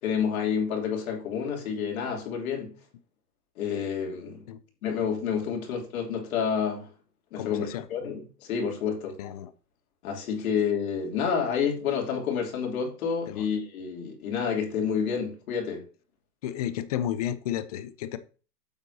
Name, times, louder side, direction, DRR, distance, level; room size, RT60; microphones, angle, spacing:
voice 1, 0.0-2.7 3.6-4.4 4.8-6.9 7.3-9.1 10.0-15.8, left 7 dB, 60° left, 3.3 m, -29 dB
voice 2, 7.4-7.9 9.2-9.5 13.3-13.5 16.4-18.2, left 11 dB, 25° left, 0.4 m, -32 dB
8.7 x 8.1 x 2.8 m
hypercardioid pair, 130°, 48 cm